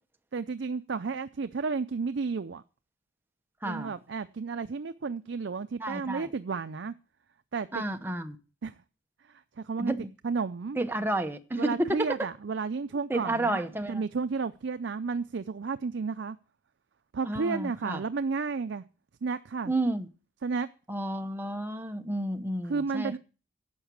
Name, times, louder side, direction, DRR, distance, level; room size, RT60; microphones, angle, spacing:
voice 1, 0.3-2.6 3.6-6.9 7.5-7.8 8.6-8.8 9.3-9.9 10.2-10.8 11.6-16.4 17.1-18.8 19.2-19.7 20.4-20.7 22.6-23.2, right 4 dB, 70° right, 0.5 m, -32 dB
voice 2, 3.6-3.9 5.8-6.3 7.7-8.4 9.8-10.1 10.8-12.1 13.1-14.0 17.3-18.0 19.7-20.1 20.9-23.2, right 1 dB, 10° right, 0.9 m, -31 dB
11.0 x 7.2 x 6.8 m
head